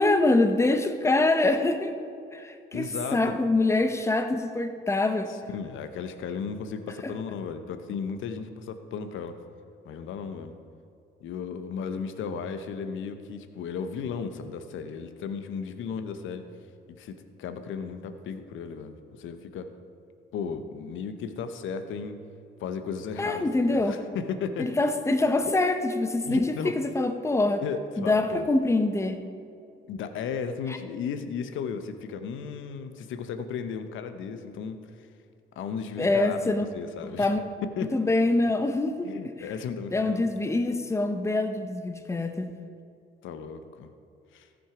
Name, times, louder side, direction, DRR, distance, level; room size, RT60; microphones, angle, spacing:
voice 1, 0.0-1.9 2.3-2.9 3.1-5.3 23.2-24.0 24.6-27.6 28.0-29.2 36.0-36.7 37.0-37.4 37.9-39.1 39.4-39.5 39.9-42.5, left 2 dB, 15° left, 7 dB, 0.8 m, -25 dB
voice 2, 2.7-3.3 5.5-9.4 9.8-10.5 11.2-16.5 16.9-19.7 20.3-22.2 22.6-24.7 26.2-26.8 27.6-28.5 29.9-35.1 35.6-37.3 37.8-37.9 39.0-40.3 43.2-43.9 44.3-44.5, left 6 dB, 80° left, 9 dB, 0.8 m, -35 dB
14.0 x 6.2 x 4.9 m, 2.5 s
cardioid pair, 90°, 20 cm